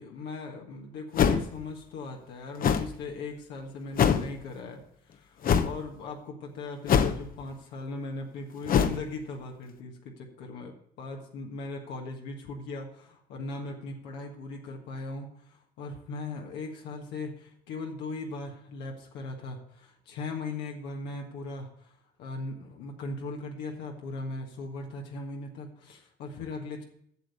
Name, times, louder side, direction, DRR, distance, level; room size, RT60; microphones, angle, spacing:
voice 1, 0.0-26.8, left 3 dB, 85° left, 1 dB, 1.6 m, -39 dB
sound 1, 1.2-1.6 2.6-2.9 4.0-4.3 5.4-5.8 6.9-7.4 8.7-9.0, left 7 dB, 55° left, 0.9 m, -23 dB
7.8 x 6.8 x 8.0 m, 0.68 s
supercardioid pair, 80°, 17 cm